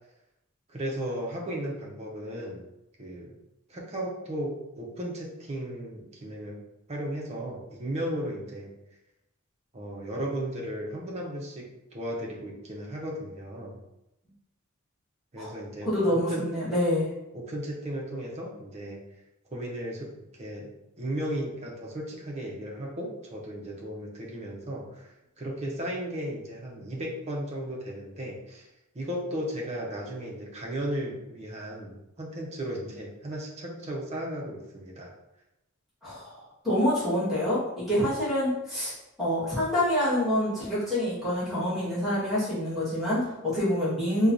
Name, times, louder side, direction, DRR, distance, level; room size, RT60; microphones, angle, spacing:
voice 1, 0.7-2.6 3.0-3.3 3.7-6.6 6.9-8.7 9.7-13.8 15.3-16.4 17.3-19.0 19.5-28.7 28.9-35.1, right 1 dB, 30° right, -2 dB, 0.6 m, -35 dB
voice 2, 15.8-17.1 36.0-38.9 39.2-44.3, left 1 dB, ahead, -11 dB, 1.4 m, -27 dB
4.5 x 2.3 x 2.6 m, 0.92 s
head